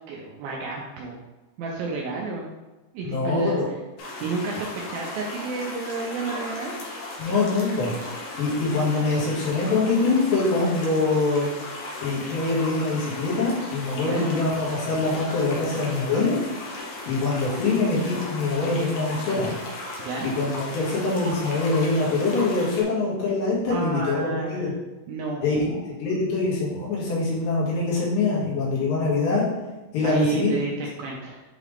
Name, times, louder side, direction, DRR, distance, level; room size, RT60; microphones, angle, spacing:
voice 1, 0.1-1.2 1.6-2.5 2.9-3.8 4.2-6.7 13.9-14.4 20.0-20.3 23.7-24.7 25.1-25.8 30.0-31.4, right 3 dB, 80° right, -1 dB, 2.1 m, -31 dB
voice 2, 3.0-3.7 7.2-7.9 8.4-11.5 12.0-16.4 16.7-19.5 20.2-24.7 25.4-25.7 26.0-29.4 29.9-30.6, left 3 dB, 85° left, -6 dB, 4.1 m, -24 dB
sound 1, 4.0-22.8, left 2 dB, 65° left, 1.9 m, -36 dB
8.0 x 3.7 x 3.4 m, 1.2 s
omnidirectional pair, 4.8 m